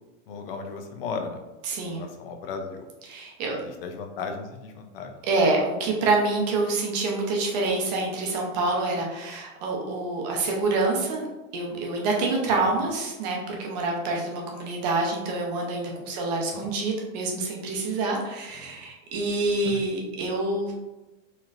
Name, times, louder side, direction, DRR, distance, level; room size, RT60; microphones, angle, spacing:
voice 1, 0.3-1.4 1.9-2.9 3.5-5.1 12.5-12.6 16.5-16.7 18.6-18.8 19.6-19.8, left 5 dB, 45° left, 5 dB, 0.5 m, -36 dB
voice 2, 1.6-2.0 3.1-3.6 5.2-11.3 11.5-20.7, right 3 dB, 30° right, 0 dB, 0.7 m, -26 dB
4.2 x 3.1 x 2.5 m, 1.1 s
supercardioid pair, 175°, 40 cm